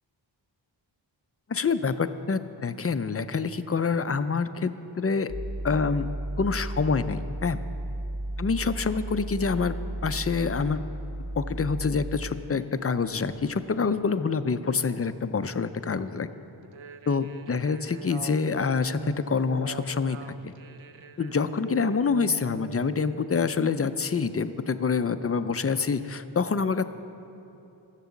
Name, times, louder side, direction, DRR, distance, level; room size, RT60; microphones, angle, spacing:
voice 1, 1.5-5.3 5.6-6.1 6.4-7.6 8.4-9.8 10.0-10.8 11.4-16.3 17.1-20.5 21.2-26.8, left 5 dB, 30° left, 11 dB, 0.5 m, -26 dB
sound 1, 5.3-12.3, right 1 dB, 20° right, 0.6 m, -34 dB
sound 2, 16.6-23.3, right 5 dB, 90° right, 0.6 m, -42 dB
14.5 x 7.5 x 7.0 m, 2.9 s
wide cardioid pair, 80°, 46 cm